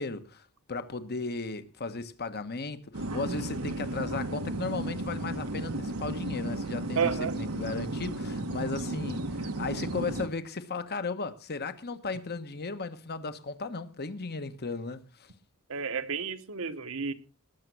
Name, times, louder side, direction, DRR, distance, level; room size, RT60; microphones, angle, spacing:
voice 1, 0.0-15.3, left 3 dB, 50° left, 1.2 m, -36 dB
sound 1, 2.9-10.3, right 2 dB, 90° right, 1.5 m, -34 dB
voice 2, 7.0-7.3 15.7-17.1, right 6 dB, 70° right, 1.3 m, -31 dB
19.5 x 6.7 x 6.2 m
head